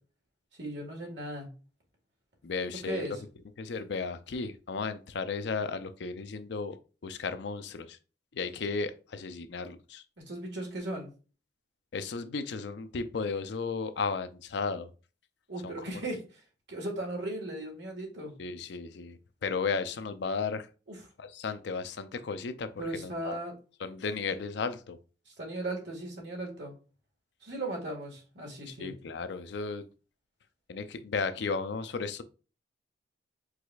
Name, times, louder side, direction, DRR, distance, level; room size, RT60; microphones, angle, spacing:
voice 1, 0.6-1.5 2.8-3.2 10.3-11.1 15.5-16.4 16.7-18.3 20.9-21.0 22.8-23.5 25.3-26.7 27.4-28.9, right 1 dB, 70° right, 1.7 m, -37 dB
voice 2, 2.4-3.1 3.6-6.8 7.0-8.0 8.3-10.0 11.9-14.9 15.6-15.7 18.4-20.7 21.2-23.4 23.8-25.0 28.7-29.8 30.7-32.2, left 4 dB, 65° left, 0.4 m, -34 dB
4.8 x 4.1 x 2.3 m
head